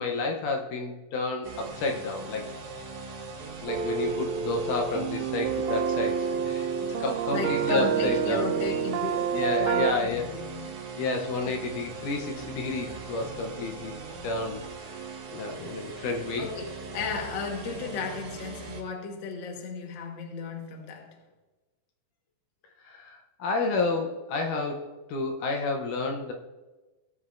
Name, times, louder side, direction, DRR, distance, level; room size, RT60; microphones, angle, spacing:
voice 1, 0.0-2.4 3.6-8.5 9.3-10.3 11.0-13.9 14.2-15.0 15.3-16.5 22.8-26.3, left 3 dB, 75° left, 3 dB, 2.2 m, -30 dB
sound 1, 1.4-18.8, right 4 dB, 65° right, 2.7 m, -40 dB
sound 2, 3.7-9.9, right 8 dB, 85° right, 2.3 m, -28 dB
voice 2, 7.3-10.6 16.4-21.1, left 5 dB, 55° left, 2 dB, 1.3 m, -35 dB
17.5 x 7.7 x 2.5 m, 1.2 s
omnidirectional pair, 4.0 m